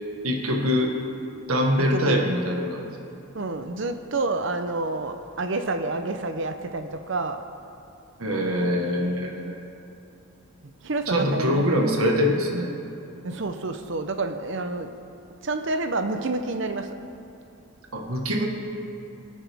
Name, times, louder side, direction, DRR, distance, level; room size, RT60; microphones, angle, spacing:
voice 1, 0.2-0.9 1.5-2.9 8.2-9.6 11.1-12.7 17.9-18.5, equal, 85° right, 1 dB, 1.5 m, -24 dB
voice 2, 1.8-2.2 3.3-7.4 10.6-12.0 13.2-14.9 15.4-16.9, right 2 dB, 60° right, 8 dB, 0.7 m, -29 dB
25.0 x 8.7 x 3.5 m, 2.8 s
head